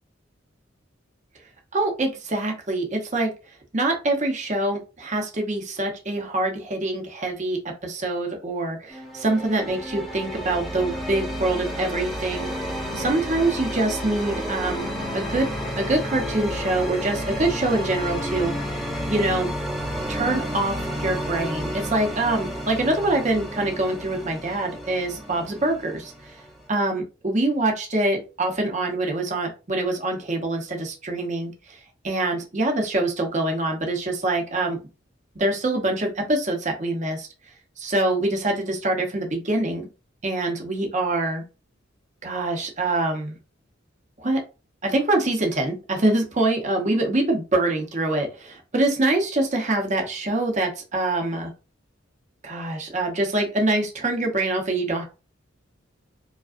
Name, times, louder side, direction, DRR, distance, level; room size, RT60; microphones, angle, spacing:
voice 1, 1.7-3.3 3.7-14.8 15.1-15.5 15.8-18.8 19.1-19.5 20.1-26.4 26.7-31.8 32.0-34.8 35.3-37.3 37.8-39.9 40.2-41.4 42.2-43.4 44.2-44.4 44.8-51.5 52.4-55.0, right 2 dB, 40° right, 2 dB, 0.9 m, -25 dB
sound 1, 8.9-26.7, equal, ahead, 0.8 m, -31 dB
4.8 x 2.3 x 2.5 m, 0.31 s
head